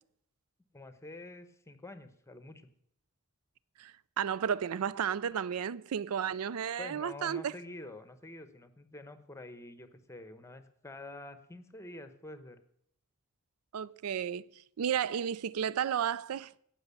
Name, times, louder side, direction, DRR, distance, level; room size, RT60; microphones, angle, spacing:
voice 1, 0.7-2.7 6.8-12.6, left 2 dB, 15° left, 0.9 m, -47 dB
voice 2, 3.8-7.5 13.7-14.5 14.8-16.6, right 8 dB, 85° right, 0.4 m, -33 dB
16.5 x 6.2 x 6.9 m
head